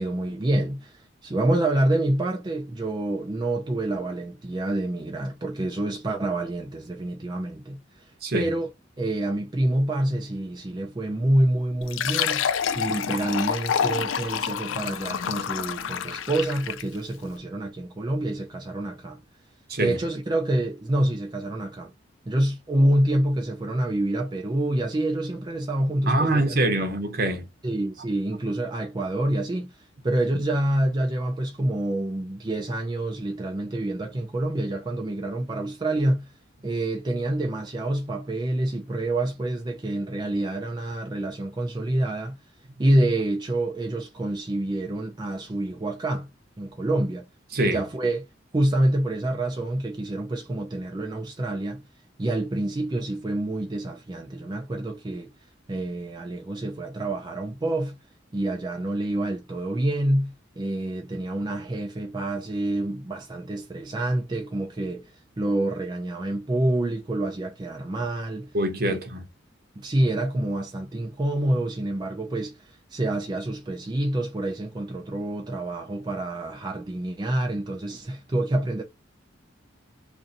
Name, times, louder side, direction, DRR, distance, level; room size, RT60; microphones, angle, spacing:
voice 1, 0.0-8.7 9.0-19.2 19.8-21.9 22.3-26.9 27.6-36.3 36.6-42.4 42.8-46.3 46.6-47.3 47.6-48.3 48.5-51.8 52.2-55.3 55.7-57.9 58.3-68.5 68.9-69.0 69.8-78.8, right 1 dB, 20° right, 0.4 m, -27 dB
Fill (with liquid), 11.8-17.0, left 8 dB, 75° left, 0.4 m, -28 dB
voice 2, 26.1-27.5 47.5-47.8 68.5-69.2, right 1 dB, 50° right, 0.8 m, -24 dB
2.6 x 2.6 x 3.9 m
head